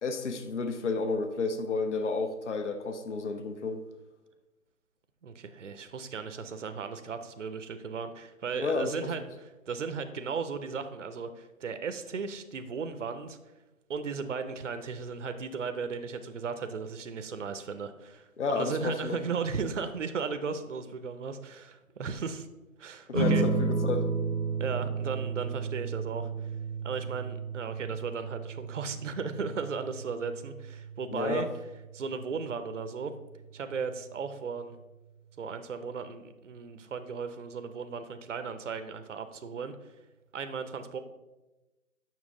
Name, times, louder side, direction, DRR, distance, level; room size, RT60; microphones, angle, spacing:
voice 1, 0.0-3.8 8.6-8.9 18.4-19.2 23.2-24.1 31.1-31.5, left 4 dB, 55° left, 8 dB, 0.7 m, -31 dB
voice 2, 5.2-13.4 13.9-22.5 22.8-23.4 24.6-26.3 26.8-31.5 31.9-33.1 33.5-34.8 35.4-39.9 40.3-41.0, right 5 dB, 55° right, 9 dB, 0.6 m, -36 dB
sound 1, 23.1-33.9, right 4 dB, 25° left, 0.9 m, -33 dB
7.3 x 5.9 x 3.7 m, 1.1 s
figure-of-eight pair, 160°, 43 cm